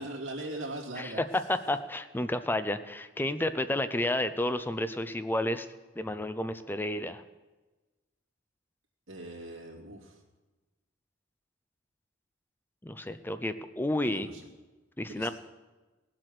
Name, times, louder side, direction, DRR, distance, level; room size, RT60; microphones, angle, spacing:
voice 1, 0.0-1.2 9.1-10.2 14.0-14.4 15.1-15.3, right 1 dB, 70° right, -2 dB, 2.7 m, -40 dB
voice 2, 1.0-5.7 6.0-7.2 12.8-14.3 15.0-15.3, left 1 dB, 10° left, 10 dB, 0.6 m, -31 dB
17.5 x 7.7 x 6.5 m, 1.2 s
head